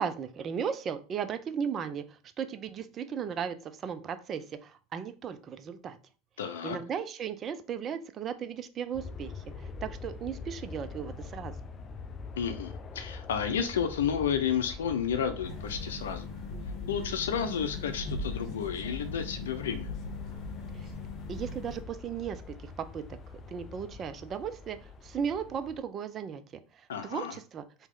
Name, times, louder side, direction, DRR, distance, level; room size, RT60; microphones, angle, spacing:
voice 1, 0.0-6.0 6.6-11.5 20.7-20.9 21.3-23.0 23.3-26.4 26.7-27.6, right 7 dB, 35° right, 11 dB, 0.5 m, -36 dB
voice 2, 6.4-6.8 12.4-16.2 16.9-19.9 26.9-27.4, left 7 dB, 85° left, 9 dB, 0.5 m, -31 dB
sound 1, 8.9-25.8, left 4 dB, 30° left, 0.5 m, -44 dB
sound 2, 15.4-21.8, left 3 dB, 50° left, 1.9 m, -39 dB
3.0 x 2.8 x 3.7 m, 0.36 s
hypercardioid pair, 95°, 0 cm